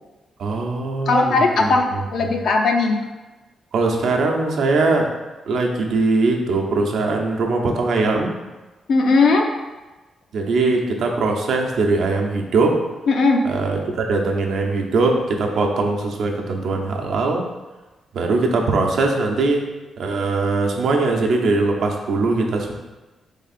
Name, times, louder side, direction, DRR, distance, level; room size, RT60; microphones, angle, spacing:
voice 1, 0.4-2.3 3.7-5.1 5.5-8.3 10.3-12.8 13.4-17.4 18.1-19.7 20.0-22.7, right 3 dB, 75° right, 1 dB, 0.7 m, -21 dB
voice 2, 1.1-3.0 8.9-9.5 13.1-13.4, left 3 dB, 70° left, 2 dB, 0.6 m, -17 dB
3.5 x 3.5 x 4.1 m, 1.2 s
cardioid pair, 105°, 0 cm